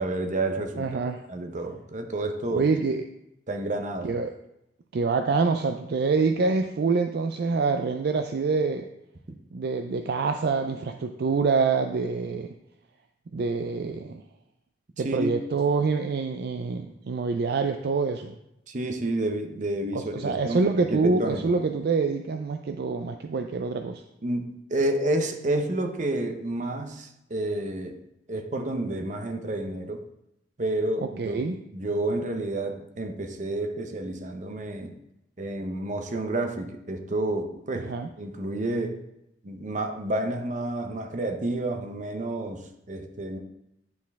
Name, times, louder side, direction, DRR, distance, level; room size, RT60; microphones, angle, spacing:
voice 1, 0.0-1.0 1.3-2.7 3.5-4.1 15.0-15.3 18.7-21.4 24.2-28.0 28.3-30.0 30.6-31.4 31.7-35.0 35.4-37.9 38.2-39.0 39.4-43.4, right 2 dB, 45° right, 6 dB, 0.7 m, -30 dB
voice 2, 0.8-1.2 2.5-3.0 4.0-4.3 4.9-8.9 9.5-12.5 13.3-14.2 15.0-18.3 19.9-24.0 31.0-31.6 37.8-38.1, right 4 dB, 60° right, 6 dB, 0.4 m, -26 dB
9.5 x 4.4 x 3.5 m, 0.84 s
head